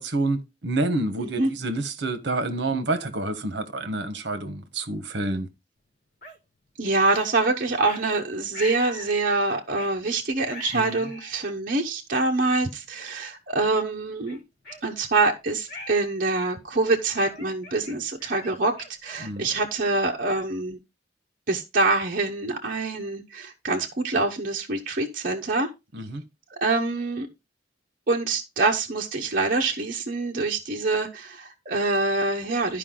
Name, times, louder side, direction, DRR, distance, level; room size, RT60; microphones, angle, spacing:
voice 1, 0.0-5.5 10.7-11.0 19.2-19.5 25.9-26.2, right 2 dB, 65° right, 1.2 m, -28 dB
voice 2, 1.2-1.5 6.8-14.4 14.8-18.7 19.0-20.8 21.5-25.7 26.6-27.3 28.1-32.8, right 3 dB, 50° right, 1.0 m, -25 dB
sound 1, 6.2-6.4 7.1-7.3 7.8-8.0 8.5-9.2 9.8-10.0 10.5-11.4 12.1-12.2 12.9-13.2 13.6-13.7 14.3-15.3 15.7-16.1 16.4-16.7 17.2-19.7, left 1 dB, 55° left, 2.7 m, -41 dB
12.0 x 5.0 x 3.8 m
head